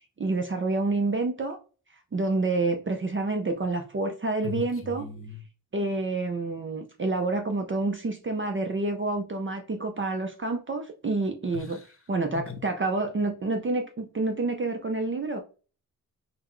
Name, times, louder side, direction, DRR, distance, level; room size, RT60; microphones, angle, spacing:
voice 1, 0.2-1.6 2.1-5.1 5.7-11.8 12.1-15.4, right 3 dB, 35° right, 0.5 m, -28 dB
voice 2, 4.4-5.4 11.5-11.9 12.3-12.6, left 5 dB, 40° left, 0.8 m, -38 dB
3.9 x 2.1 x 4.4 m
wide cardioid pair, 135°, 35 cm